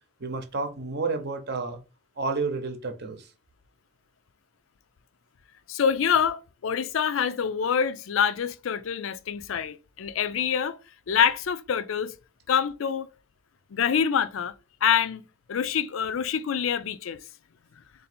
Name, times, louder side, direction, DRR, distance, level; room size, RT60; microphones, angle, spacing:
voice 1, 0.2-1.8 2.2-3.3, right 4 dB, 55° right, 0.8 m, -30 dB
voice 2, 5.7-10.8 11.1-12.1 12.5-13.1 13.7-14.5 14.8-17.2, left 7 dB, 75° left, 0.4 m, -26 dB
3.7 x 2.7 x 4.2 m
head